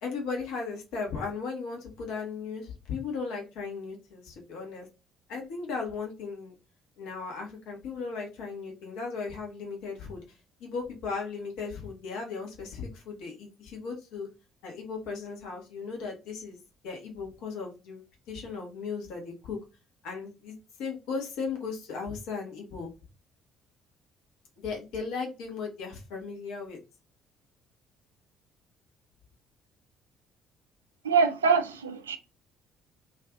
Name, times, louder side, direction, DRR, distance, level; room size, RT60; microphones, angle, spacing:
voice 1, 0.0-4.9 5.3-6.5 7.0-10.2 10.6-14.3 14.6-16.6 16.8-18.0 18.3-19.6 20.0-22.9 24.6-26.8, left 5 dB, 60° left, 0.9 m, -36 dB
voice 2, 31.0-32.2, right 5 dB, 80° right, 0.3 m, -24 dB
2.5 x 2.4 x 3.6 m
figure-of-eight pair, 50°, 0 cm